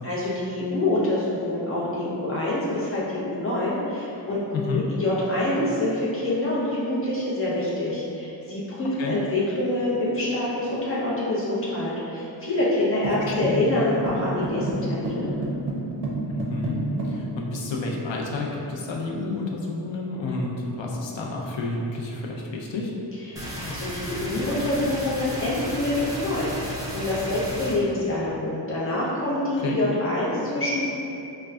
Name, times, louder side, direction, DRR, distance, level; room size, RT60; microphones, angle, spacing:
voice 1, 0.0-15.3 23.3-30.8, left 1 dB, 30° left, -8 dB, 0.8 m, -26 dB
voice 2, 4.5-4.8 9.0-9.2 13.5-13.7 16.3-16.8 17.0-22.9 29.6-29.8, left 3 dB, 80° left, -1 dB, 0.6 m, -30 dB
sound 1, 13.0-17.2, right 2 dB, 65° right, 0.6 m, -30 dB
sound 2, 23.4-27.8, equal, 10° right, 0.4 m, -34 dB
4.9 x 2.2 x 2.3 m, 2.9 s
wide cardioid pair, 155°, 44 cm